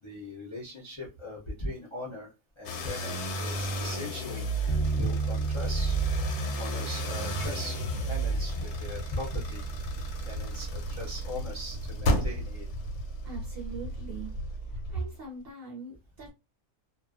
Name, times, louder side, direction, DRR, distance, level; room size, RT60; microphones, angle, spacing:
voice 1, 0.0-6.0 6.6-9.6 10.2-12.7, left 1 dB, 45° left, -5 dB, 0.4 m, -39 dB
sound 1, 2.6-15.0, right 1 dB, 65° left, 0.8 m, -33 dB
sound 2, 4.7-12.8, right 4 dB, 15° right, 0.8 m, -35 dB
sound 3, 7.1-15.0, left 4 dB, 85° left, 1.1 m, -41 dB
voice 2, 13.2-14.3 14.7-16.3, right 5 dB, 55° right, 0 dB, 0.7 m, -40 dB
2.5 x 2.1 x 2.4 m, 0.27 s
omnidirectional pair, 1.5 m